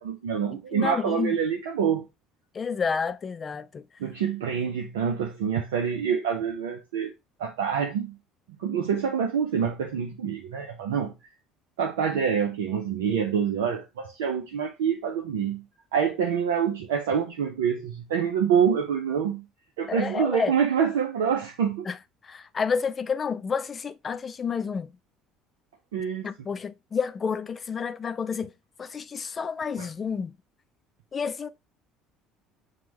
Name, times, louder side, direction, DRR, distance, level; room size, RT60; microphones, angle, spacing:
voice 1, 0.0-2.1 4.0-7.1 7.4-8.2 8.6-11.1 11.8-15.6 15.9-19.4 19.8-21.9 25.9-26.3 29.8-29.9, right 7 dB, 80° right, 0.5 m, -26 dB
voice 2, 0.5-1.4 2.5-3.8 19.9-20.5 21.9-22.0 22.2-24.9 26.2-28.5 28.8-30.4 31.1-31.5, left 6 dB, 35° left, 0.4 m, -30 dB
6.0 x 2.2 x 3.0 m
hypercardioid pair, 65°, 0 cm